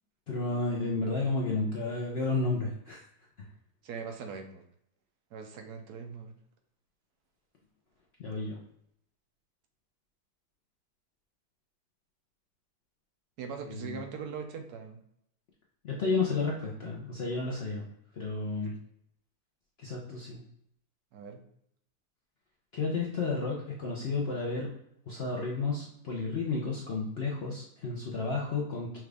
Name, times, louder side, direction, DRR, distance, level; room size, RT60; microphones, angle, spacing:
voice 1, 0.3-3.0 8.2-8.6 13.7-14.0 15.8-17.8 18.2-18.7 19.8-20.4 22.7-24.7 25.1-29.0, left 3 dB, 55° left, -3 dB, 0.7 m, -32 dB
voice 2, 3.8-4.6 5.3-6.3 13.4-15.0 18.6-18.8 21.1-21.4, right 6 dB, 70° right, 5 dB, 1.1 m, -41 dB
6.0 x 2.4 x 3.3 m, 0.72 s
omnidirectional pair, 1.8 m